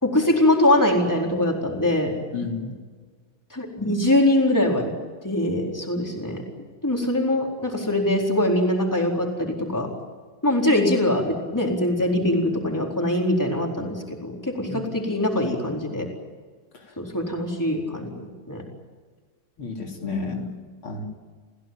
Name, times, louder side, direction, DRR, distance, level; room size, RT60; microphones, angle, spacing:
voice 1, 0.0-2.1 3.5-4.9 5.2-6.4 6.8-9.9 10.4-16.1 17.0-18.1 18.5-18.6, left 1 dB, 10° left, 0 dB, 4.3 m, -22 dB
voice 2, 2.3-2.7 14.7-14.9 19.6-20.5 20.8-21.0, left 4 dB, 80° left, 1 dB, 4.1 m, -31 dB
29.5 x 17.0 x 9.0 m, 1.5 s
omnidirectional pair, 2.3 m